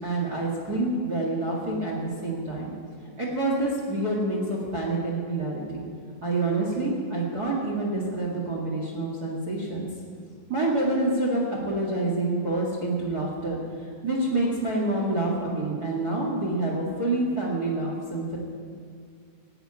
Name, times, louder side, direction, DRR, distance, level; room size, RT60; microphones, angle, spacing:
voice 1, 0.0-2.7 3.2-5.8 6.2-9.9 10.5-13.6 14.0-18.4, right 2 dB, 65° right, -3 dB, 0.9 m, -27 dB
16.5 x 7.9 x 9.6 m, 2.2 s
omnidirectional pair, 5.1 m